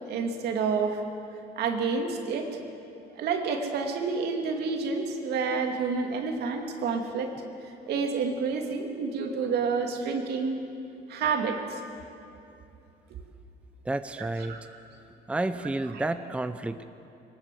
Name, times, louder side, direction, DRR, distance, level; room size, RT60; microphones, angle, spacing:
voice 1, 0.1-1.0 1.6-2.5 3.2-7.3 7.6-10.6 11.1-11.8 14.2-14.6 15.9-16.0, right 5 dB, 70° right, 3 dB, 2.7 m, -29 dB
voice 2, 13.9-14.6 15.3-16.8, right 2 dB, 5° right, 10 dB, 0.6 m, -30 dB
22.0 x 19.0 x 7.7 m, 2.7 s
cardioid pair, 110°, 17 cm